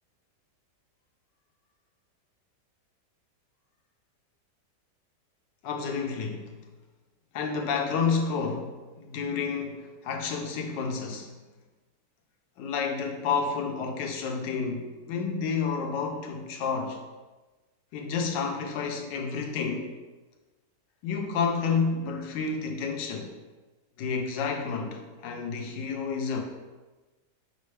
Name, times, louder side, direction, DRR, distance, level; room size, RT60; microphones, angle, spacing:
voice 1, 5.6-6.6 7.3-11.3 12.6-17.0 17.9-20.0 21.0-23.3 24.0-26.4, left 5 dB, 85° left, 3 dB, 1.3 m, -30 dB
4.3 x 3.4 x 3.2 m, 1.2 s
omnidirectional pair, 1.9 m